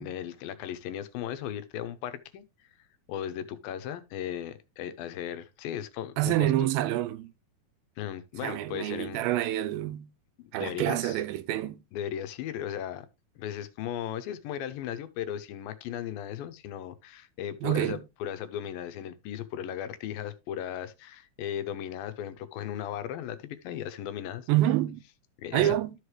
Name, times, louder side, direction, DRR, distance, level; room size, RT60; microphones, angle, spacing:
voice 1, 0.0-2.4 3.1-6.7 8.0-9.3 10.4-11.2 11.9-13.1 13.4-24.5 25.4-25.8, left 10 dB, 85° left, 2.5 m, -36 dB
voice 2, 6.2-7.3 8.4-10.1 10.5-11.8 17.6-18.0 24.5-25.0 25.5-25.9, right 14 dB, 85° right, 2.5 m, -27 dB
13.0 x 4.9 x 3.1 m
omnidirectional pair, 4.2 m